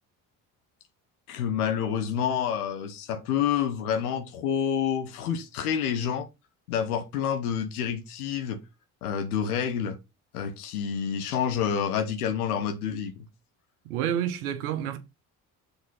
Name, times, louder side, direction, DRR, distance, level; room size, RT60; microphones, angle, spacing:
voice 1, 1.3-6.3 6.7-8.6 9.0-10.0 10.3-13.3, left 8 dB, 90° left, 0.9 m, -28 dB
voice 2, 13.8-15.0, right 10 dB, 85° right, 1.0 m, -29 dB
6.9 x 4.0 x 5.5 m
hypercardioid pair, 55°, 43 cm